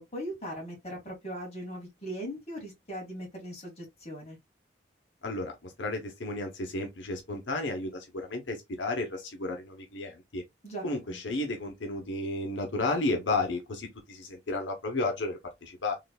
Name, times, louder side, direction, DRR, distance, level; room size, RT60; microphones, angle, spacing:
voice 1, 0.0-4.4 10.6-11.2, equal, 35° left, 2.0 m, -39 dB
voice 2, 5.2-10.4 10.8-15.9, left 2 dB, 90° left, 0.9 m, -33 dB
3.7 x 3.2 x 2.2 m
head